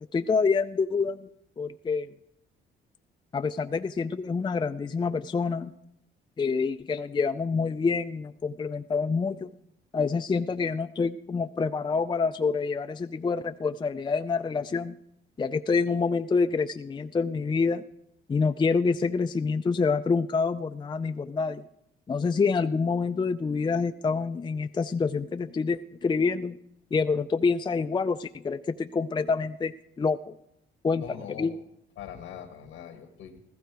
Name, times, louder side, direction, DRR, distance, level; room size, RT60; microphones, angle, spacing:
voice 1, 0.1-1.3 1.6-2.1 3.3-5.7 6.4-9.5 9.9-15.0 15.4-17.8 18.3-21.6 22.1-26.6 26.9-30.3 30.8-31.0 31.4-31.5, left 4 dB, 25° left, 8 dB, 0.4 m, -27 dB
voice 2, 31.0-31.6 32.0-33.4, left 9 dB, 85° left, 4 dB, 1.4 m, -42 dB
15.0 x 14.0 x 4.6 m, 0.79 s
cardioid pair, 90°, 20 cm